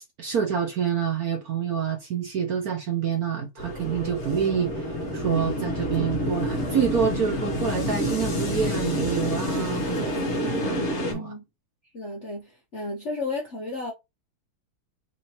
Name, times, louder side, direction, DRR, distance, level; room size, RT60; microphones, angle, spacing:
voice 1, 0.2-10.1 10.6-10.8 11.1-11.3, right 7 dB, 60° right, 1.0 m, -27 dB
sound 1, 3.6-11.1, left 1 dB, 40° left, 1.1 m, -28 dB
voice 2, 10.4-11.4 11.9-13.9, left 2 dB, 60° left, 0.7 m, -34 dB
4.1 x 2.8 x 2.9 m
omnidirectional pair, 2.3 m